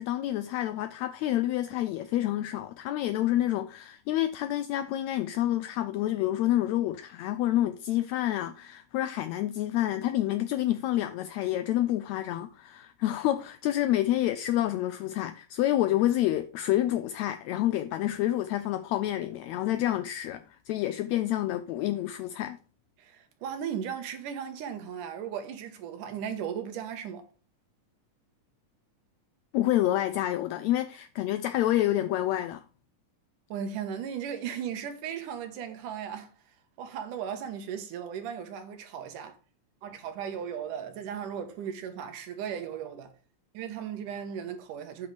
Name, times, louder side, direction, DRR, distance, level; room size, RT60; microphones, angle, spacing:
voice 1, 0.0-22.6 29.5-32.6, left 13 dB, 80° left, 1.7 m, -28 dB
voice 2, 23.0-27.3 33.5-36.3 36.8-39.4 39.8-43.1 43.5-45.1, right 8 dB, 85° right, 2.9 m, -36 dB
8.8 x 6.1 x 5.0 m
omnidirectional pair, 3.6 m